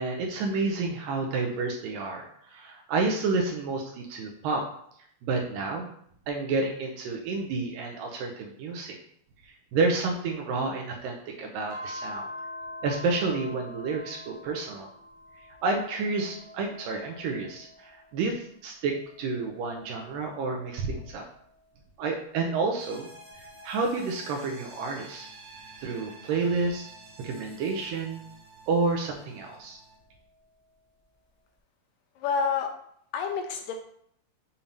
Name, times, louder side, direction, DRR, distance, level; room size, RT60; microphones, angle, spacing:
voice 1, 0.0-4.6 5.2-5.9 6.3-9.0 9.4-12.3 12.8-14.9 15.6-21.2 22.0-23.1 23.3-25.3 25.8-26.9 27.2-28.2 28.7-29.8, right 3 dB, 80° right, 1 dB, 2.2 m, -30 dB
sound 1, 11.7-18.4 18.9-21.8 22.4-25.1 25.9-28.3 29.7-30.7, left 1 dB, 15° right, 0.8 m, -47 dB
sound 2, 22.8-30.0, right 2 dB, 45° right, 1.4 m, -50 dB
voice 2, 32.2-32.7 33.1-33.8, left 6 dB, 80° left, 4 dB, 2.0 m, -28 dB
7.1 x 2.8 x 5.1 m, 0.67 s
omnidirectional pair, 4.3 m